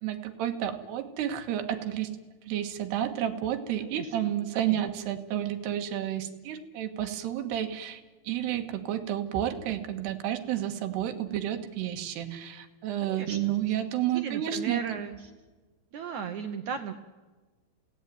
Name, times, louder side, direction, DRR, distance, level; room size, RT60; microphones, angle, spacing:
voice 1, 0.0-2.2 2.5-15.0, right 11 dB, 90° right, 6 dB, 3.5 m, -31 dB
voice 2, 3.8-4.1 4.5-4.8 13.0-13.6 14.1-15.3 15.9-16.9, right 6 dB, 70° right, 7 dB, 1.8 m, -36 dB
27.5 x 17.0 x 9.2 m, 1.3 s
omnidirectional pair, 4.6 m